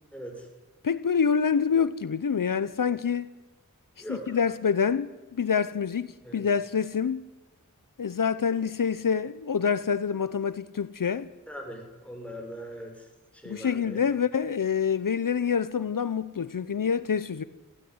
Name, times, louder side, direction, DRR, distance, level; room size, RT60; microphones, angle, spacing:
voice 1, 0.1-0.5 4.0-4.4 6.2-6.4 11.5-13.1 13.3-14.0, equal, 5° left, 6.7 m, -40 dB
voice 2, 0.8-3.3 4.1-7.3 8.0-11.3 13.4-17.4, left 6 dB, 80° left, 0.8 m, -26 dB
22.5 x 16.5 x 9.7 m
wide cardioid pair, 65°, 32 cm